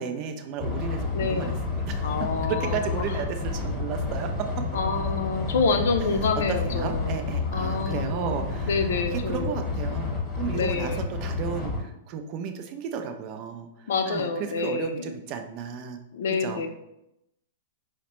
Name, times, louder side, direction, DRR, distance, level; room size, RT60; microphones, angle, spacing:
voice 1, 0.0-2.0 2.5-4.7 6.2-10.1 10.4-16.0 16.4-16.7, right 7 dB, 45° right, 6 dB, 0.5 m, -34 dB
sound 1, 0.6-11.8, left 3 dB, 15° left, 1.1 m, -30 dB
voice 2, 1.1-1.6 2.0-2.9 4.7-7.2 7.5-8.4 8.7-9.6 10.5-11.1 13.9-15.1 16.1-16.7, left 4 dB, 70° left, 6 dB, 0.5 m, -27 dB
4.8 x 2.2 x 3.0 m, 0.84 s
hypercardioid pair, 110°, 0 cm